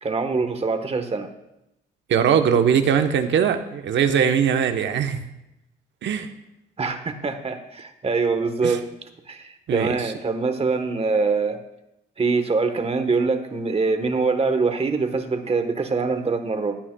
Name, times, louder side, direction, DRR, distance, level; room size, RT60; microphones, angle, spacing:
voice 1, 0.0-1.3 6.8-8.8 9.3-11.6 12.2-16.8, right 4 dB, 30° right, 7 dB, 1.2 m, -24 dB
voice 2, 2.1-5.2 6.0-6.3 8.6-8.8 9.7-10.1, right 8 dB, 70° right, 7 dB, 1.0 m, -21 dB
16.0 x 9.7 x 2.3 m, 0.89 s
cardioid pair, 90°, 20 cm